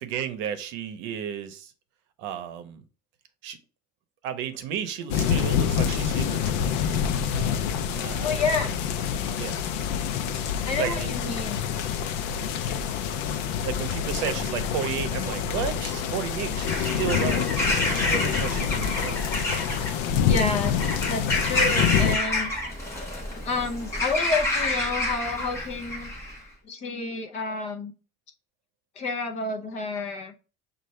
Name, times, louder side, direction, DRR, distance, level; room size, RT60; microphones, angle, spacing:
voice 1, 0.0-1.7 2.2-2.8 3.4-3.6 4.2-7.0 7.3-8.4 9.3-9.6 10.7-11.3 13.6-19.4, right 8 dB, 65° right, 0.8 m, -33 dB
sound 1, 5.1-22.2, left 8 dB, 75° left, 0.5 m, -27 dB
voice 2, 8.2-8.8 10.6-11.6 20.2-22.5 23.4-26.1 26.6-27.9 29.0-30.3, left 3 dB, 35° left, 0.7 m, -29 dB
Bird vocalization bird call bird song / Crow, 16.5-26.4, left 1 dB, 15° left, 1.2 m, -29 dB
6.6 x 2.5 x 3.1 m
cardioid pair, 170°, 20 cm